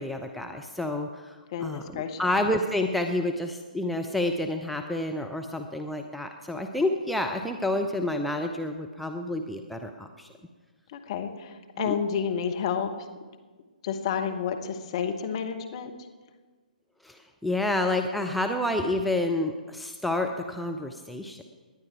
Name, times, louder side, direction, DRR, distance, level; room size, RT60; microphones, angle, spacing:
voice 1, 0.0-1.4 1.6-10.3 11.8-11.9 17.0-21.4, left 1 dB, ahead, 3 dB, 0.6 m, -29 dB
voice 2, 1.5-2.3 10.9-12.9 13.8-15.9, left 7 dB, 40° left, 6 dB, 1.3 m, -30 dB
19.0 x 10.5 x 4.5 m, 1.4 s
figure-of-eight pair, 125°, 5 cm